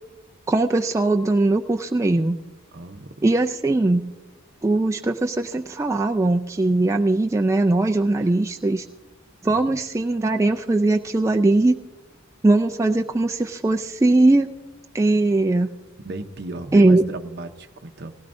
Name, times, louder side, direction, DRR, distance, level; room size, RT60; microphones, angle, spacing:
voice 1, 0.5-2.4 3.2-4.0 4.6-8.9 9.4-11.8 12.4-14.5 14.9-15.7 16.7-17.0, right 2 dB, 15° right, 3 dB, 0.3 m, -20 dB
voice 2, 2.7-3.2 8.2-8.3 9.5-9.8 16.0-18.2, right 2 dB, 50° right, 6 dB, 0.7 m, -36 dB
18.0 x 16.0 x 2.6 m, 1.1 s
head